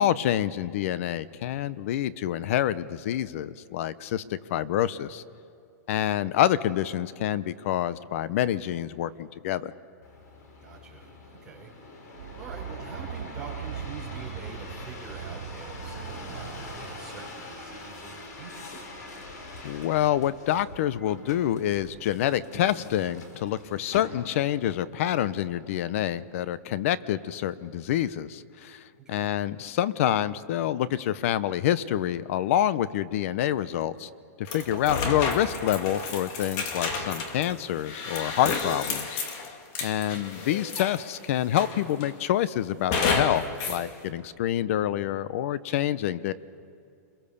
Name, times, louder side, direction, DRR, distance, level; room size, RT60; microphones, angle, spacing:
voice 1, 0.0-5.2 5.9-9.7 19.6-34.1 34.4-39.5 39.8-46.3, left 11 dB, 50° left, 17 dB, 0.8 m, -27 dB
sound 1, 10.0-24.6 25.2-25.7, left 2 dB, 70° left, 4.8 m, -44 dB
voice 2, 10.6-11.1 11.4-18.7 29.0-29.3 40.0-40.2, right 5 dB, 5° right, -6 dB, 4.9 m, -45 dB
sound 2, 12.1-17.4, right 8 dB, 80° right, 3.0 m, -40 dB
sound 3, 34.5-41.1 41.6-42.2 42.9-43.8, left 4 dB, 35° left, 2.1 m, -31 dB
29.0 x 22.5 x 7.0 m, 2.5 s
supercardioid pair, 160°, 9 cm